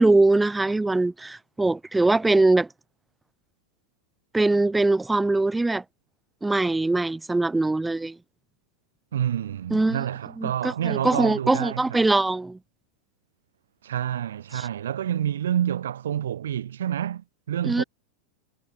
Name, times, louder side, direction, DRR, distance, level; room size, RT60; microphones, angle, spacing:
voice 1, 0.0-2.7 4.3-5.8 6.4-8.2 9.7-10.0 10.4-12.6 14.5-14.7 17.6-17.8, right 2 dB, 5° right, 0.4 m, -22 dB
voice 2, 9.1-12.1 13.8-17.8, right 10 dB, 60° right, 0.4 m, -28 dB
figure-of-eight pair, 90°, 0 cm